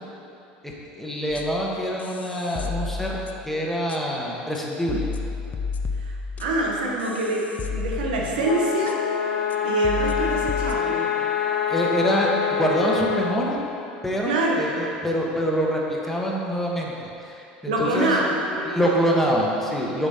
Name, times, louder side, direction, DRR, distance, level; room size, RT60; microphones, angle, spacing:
voice 1, 1.0-3.2 3.5-5.1 11.7-13.6 14.0-16.9 17.2-18.1 18.6-20.1, equal, 5° left, -3 dB, 1.2 m, -25 dB
sound 1, 1.3-1.6 2.0-3.5 3.9-4.0 4.6-4.7 4.9-8.6 8.9-9.0 9.5-9.6 9.8-10.8, left 4 dB, 35° left, 0.5 m, -32 dB
voice 2, 6.0-9.0 9.6-11.1 14.3-14.6 17.6-19.2, right 2 dB, 80° right, -1 dB, 1.0 m, -25 dB
sound 2, 8.4-13.3, left 8 dB, 55° left, 1.5 m, -25 dB
6.7 x 5.2 x 4.3 m, 2.8 s
hypercardioid pair, 80°, 5 cm